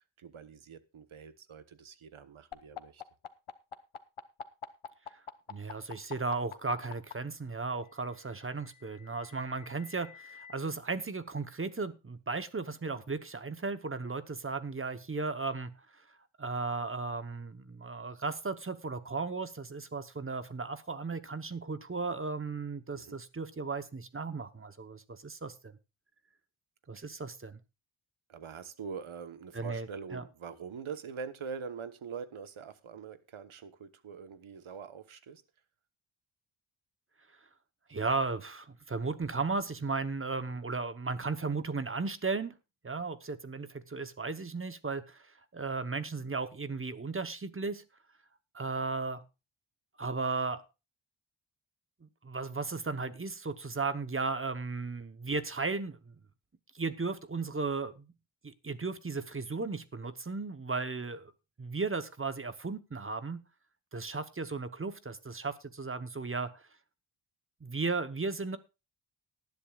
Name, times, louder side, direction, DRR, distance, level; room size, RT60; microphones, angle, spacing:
voice 1, 0.2-3.0 22.9-23.2 27.0-27.1 28.3-35.4, right 6 dB, 75° right, 12 dB, 1.2 m, -44 dB
sound 1, 2.5-7.1 8.3-10.5, left 7 dB, 80° left, 1.1 m, -45 dB
voice 2, 5.5-16.0 16.4-25.7 26.9-27.6 29.5-29.9 30.1-30.2 37.9-42.5 42.8-47.8 48.5-49.2 50.0-50.6 52.0-56.1 56.7-58.1 58.4-61.3 61.6-63.4 63.9-66.6 67.6-68.6, right 4 dB, 25° right, 12 dB, 0.9 m, -35 dB
19.0 x 10.5 x 2.4 m, 0.28 s
wide cardioid pair, 135°, 49 cm